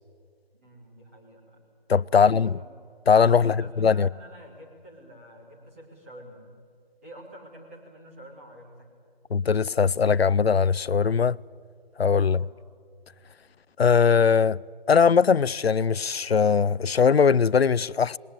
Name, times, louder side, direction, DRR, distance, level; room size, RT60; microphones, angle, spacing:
voice 1, 0.6-1.6 2.1-2.8 3.3-6.4 7.0-8.9 12.2-12.5, right 1 dB, 15° right, 2.6 m, -48 dB
voice 2, 1.9-2.5 3.1-4.1 9.3-11.4 12.0-12.4 13.8-14.6 14.9-18.2, left 6 dB, 80° left, 0.5 m, -20 dB
20.0 x 19.0 x 9.7 m
figure-of-eight pair, 160°, 31 cm